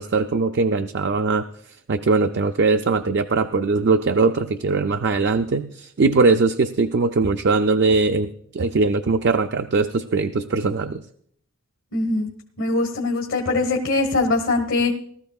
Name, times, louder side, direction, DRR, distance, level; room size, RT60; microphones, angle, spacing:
voice 1, 0.0-1.5 1.9-11.0, right 3 dB, 60° right, 7 dB, 0.5 m, -20 dB
voice 2, 11.9-12.3 12.6-14.9, left 3 dB, 75° left, 2 dB, 1.4 m, -22 dB
19.0 x 13.0 x 2.4 m, 0.64 s
head